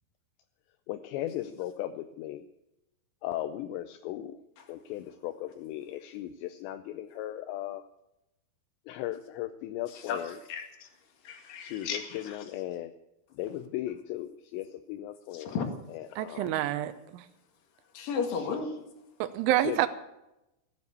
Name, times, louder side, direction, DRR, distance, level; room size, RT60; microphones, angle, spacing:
voice 1, 0.9-2.5 3.2-4.4 4.7-7.9 8.9-10.4 11.6-12.9 13.3-15.6 15.9-16.6 18.3-18.6 19.6-19.9, left 13 dB, 80° left, 10 dB, 2.7 m, -37 dB
voice 2, 10.5-10.9 11.2-12.4 15.3-15.7 17.9-18.7, left 6 dB, 55° left, 5 dB, 3.1 m, -34 dB
voice 3, 16.2-17.2 19.2-19.9, right 13 dB, 85° right, 11 dB, 3.2 m, -28 dB
15.5 x 9.6 x 8.3 m, 0.90 s
omnidirectional pair, 5.5 m